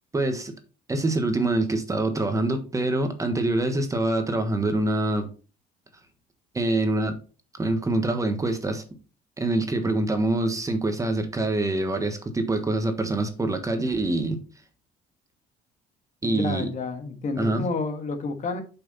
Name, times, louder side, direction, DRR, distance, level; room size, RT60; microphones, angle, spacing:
voice 1, 0.1-0.6 0.9-5.3 6.5-7.2 7.6-8.8 9.4-14.4 16.2-16.7 17.4-17.7, right 2 dB, 20° right, 1.4 m, -25 dB
voice 2, 16.2-18.6, left 3 dB, 45° left, 1.6 m, -30 dB
7.5 x 5.9 x 4.2 m
cardioid pair, 110°, 17 cm